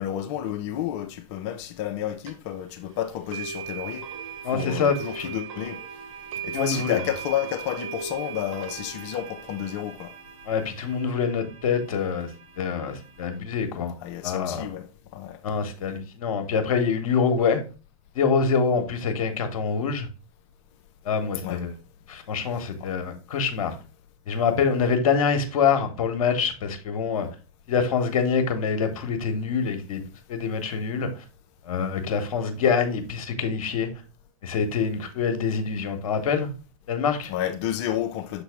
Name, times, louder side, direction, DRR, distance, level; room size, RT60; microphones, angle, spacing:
voice 1, 0.0-4.1 4.5-5.8 6.4-10.1 14.0-14.9 15.1-15.4 21.4-21.6 22.8-22.9 37.3-38.4, left 11 dB, 50° left, 0.8 m, -30 dB
sound 1, 2.3-2.4 3.3-13.4, right 7 dB, 60° right, 1.0 m, -39 dB
voice 2, 4.4-5.3 6.5-7.0 10.5-12.3 12.6-14.0 14.2-14.7 15.4-17.6 18.1-20.1 21.0-21.7 22.1-23.8 24.3-27.3 27.7-30.0 30.3-31.1 31.6-33.9 34.4-36.5 36.9-37.3, left 6 dB, 70° left, 1.3 m, -25 dB
6.8 x 4.0 x 3.5 m
hypercardioid pair, 100°, 19 cm